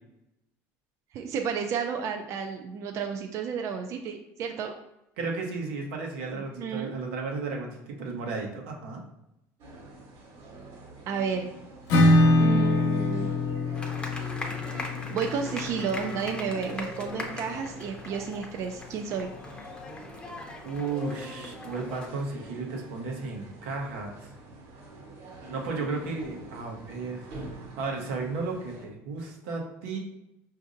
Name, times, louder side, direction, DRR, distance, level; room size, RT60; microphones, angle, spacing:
voice 1, 1.1-4.7 6.3-6.9 11.1-11.5 12.4-13.3 14.7-19.3, right 6 dB, 45° right, 4 dB, 0.3 m, -32 dB
voice 2, 5.2-9.0 20.6-24.2 25.5-27.2 27.8-30.0, right 4 dB, 90° right, 0 dB, 0.8 m, -34 dB
sound 1, 9.6-28.9, right 2 dB, 60° right, 1.1 m, -45 dB
Acoustic guitar / Strum, 11.9-17.3, left 1 dB, 70° left, 0.8 m, -25 dB
sound 2, 13.7-22.1, left 2 dB, 15° left, 0.6 m, -40 dB
5.0 x 2.5 x 2.5 m, 0.87 s
supercardioid pair, 115°, 7 cm